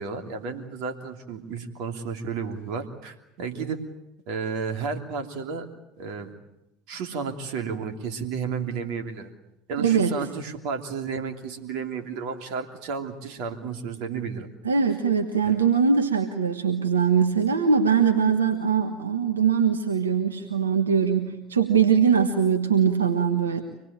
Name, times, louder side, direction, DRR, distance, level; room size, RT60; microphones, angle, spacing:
voice 1, 0.0-3.8 4.3-5.7 6.0-6.3 6.9-9.3 9.7-14.5 15.4-15.6, right 5 dB, 65° right, 5 dB, 3.1 m, -32 dB
voice 2, 9.8-10.2 14.6-23.6, right 6 dB, 90° right, 6 dB, 1.3 m, -22 dB
25.5 x 20.0 x 8.9 m, 0.90 s
hypercardioid pair, 70°, 0 cm